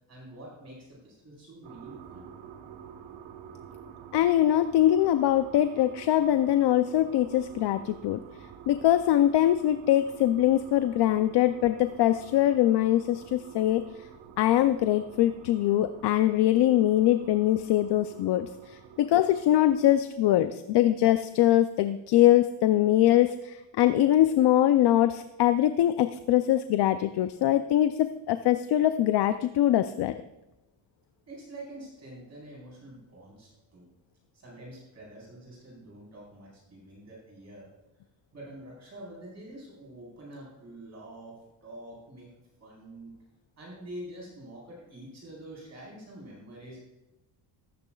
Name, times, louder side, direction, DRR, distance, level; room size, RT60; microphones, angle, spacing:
voice 1, 0.1-2.2 31.3-33.9 34.3-37.7 38.3-42.3 42.6-43.1 43.6-46.8, right 1 dB, 35° right, -4 dB, 4.2 m, -46 dB
sound 1, 1.6-20.0, right 7 dB, 65° right, 1.2 m, -49 dB
voice 2, 4.1-8.2 8.7-13.8 14.4-30.1, left 12 dB, 60° left, 10 dB, 0.5 m, -23 dB
14.5 x 13.5 x 2.3 m, 0.94 s
cardioid pair, 160°, 47 cm